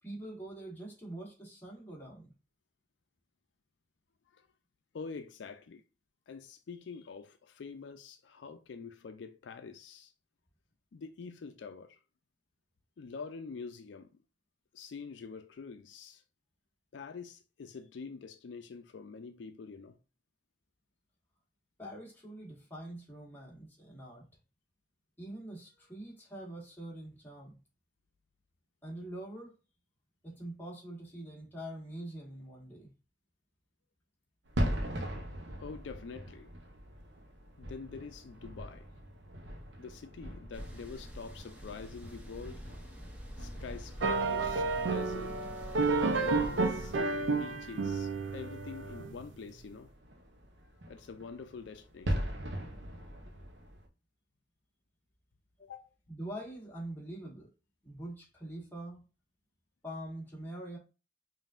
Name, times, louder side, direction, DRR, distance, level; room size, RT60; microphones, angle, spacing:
voice 1, 0.0-2.3 21.8-24.3 25.2-27.6 28.8-29.5 30.2-32.9 56.1-57.5 57.8-59.0 59.8-60.8, right 1 dB, 10° left, 1.4 m, -44 dB
voice 2, 4.9-5.8 6.3-10.1 10.9-12.0 13.0-14.1 14.7-16.2 16.9-20.0 35.6-36.5 37.6-38.9 39.8-42.6 43.4-45.4 46.2-46.9 47.3-49.9 50.9-52.3 55.6-55.9, left 5 dB, 80° left, 0.4 m, -46 dB
sound 1, 34.4-53.9, equal, 75° right, 0.9 m, -41 dB
sound 2, 40.5-47.0, equal, 10° right, 0.7 m, -48 dB
sound 3, 44.0-49.3, right 3 dB, 90° right, 0.5 m, -31 dB
5.3 x 2.6 x 2.4 m
head